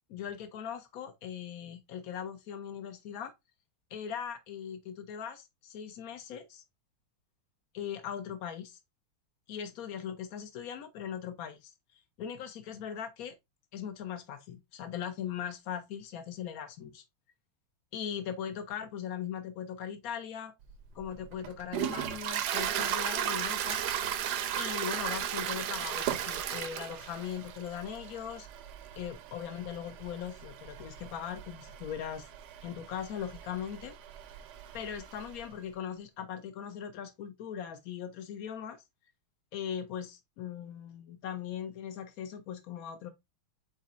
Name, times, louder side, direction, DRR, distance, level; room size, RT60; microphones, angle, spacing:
voice 1, 0.1-3.3 3.9-6.6 7.7-8.8 9.5-11.7 12.2-13.4 13.7-17.0 17.9-20.5 20.9-23.8 24.6-28.5 29.0-32.3 32.6-34.0 34.7-38.8 39.5-43.1, left 8 dB, 80° left, 0.7 m, -39 dB
Toilet flush, 20.7-35.4, right 10 dB, 75° right, 0.9 m, -36 dB
5.1 x 4.0 x 2.5 m
omnidirectional pair, 2.3 m